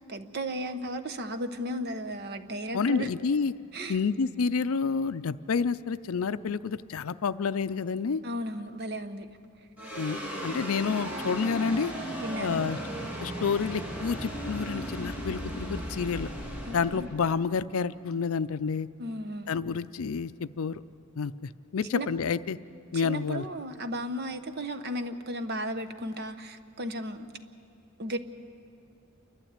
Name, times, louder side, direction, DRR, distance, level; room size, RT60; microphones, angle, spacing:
voice 1, 0.1-3.1 3.7-4.0 8.2-9.3 12.2-12.7 16.7-17.1 19.0-19.5 21.9-22.1 23.0-27.3 28.0-28.2, equal, 50° right, 9 dB, 0.9 m, -35 dB
voice 2, 2.7-3.5 3.9-8.2 10.0-11.9 12.4-12.8 13.2-16.3 16.7-18.9 19.5-20.8 21.2-22.6 22.9-23.4, left 5 dB, 70° left, 14 dB, 0.5 m, -29 dB
sound 1, 9.8-18.3, right 1 dB, 5° right, 2.8 m, -36 dB
28.5 x 12.0 x 8.8 m, 2.5 s
head